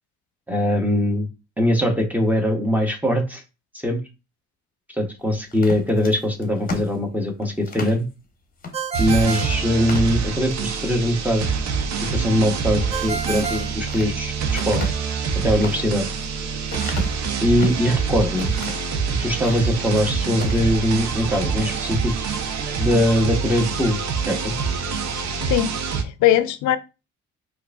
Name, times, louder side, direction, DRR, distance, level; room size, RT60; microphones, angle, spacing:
voice 1, 0.5-1.3 1.6-3.4 3.8-4.0 5.0-8.1 9.0-11.5 12.1-14.3 14.6-14.9 15.4-16.1 17.4-18.5 19.1-22.1 22.8-24.5, equal, 5° right, 0.7 m, -21 dB
sound 1, 5.5-8.0 8.6-8.8 9.1-9.2 9.7-10.6 11.1-11.6 13.4-14.1 14.5-17.9 18.4-18.9 19.3-20.1 20.3-20.6, left 2 dB, 30° left, 0.8 m, -34 dB
Ringtone, 8.7-10.4 12.9-14.6, right 5 dB, 20° right, 0.4 m, -31 dB
sound 2, 8.9-26.0, right 5 dB, 65° right, 0.6 m, -26 dB
voice 2, 25.4-26.8, left 13 dB, 75° left, 0.5 m, -20 dB
4.6 x 2.5 x 2.3 m
cardioid pair, 90°, 30 cm